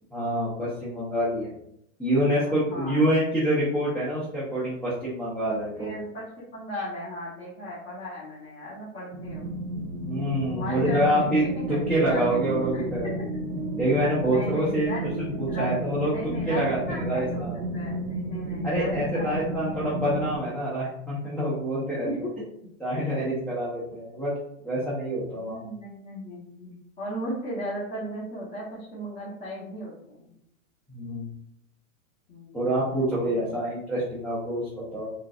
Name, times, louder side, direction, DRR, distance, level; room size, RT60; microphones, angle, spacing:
voice 1, 0.1-1.5 2.0-5.9 10.0-13.1 13.8-14.9 15.2-17.6 18.6-22.1 22.8-24.3 24.6-25.6 30.9-31.3 32.5-35.1, right 1 dB, 5° left, -10 dB, 0.7 m, -26 dB
voice 2, 2.4-3.1 5.5-6.3 6.5-9.5 10.5-11.8 12.1-12.4 12.7-12.8 14.3-15.1 15.5-15.7 16.0-17.4 17.7-19.5 22.0-22.2 25.5-26.7 27.0-30.3 32.3-32.6 33.2-33.6, equal, 20° left, -9 dB, 1.0 m, -36 dB
sound 1, 9.1-20.4, right 1 dB, 80° right, 0.8 m, -32 dB
3.8 x 2.4 x 2.4 m, 0.76 s
hypercardioid pair, 130°, 41 cm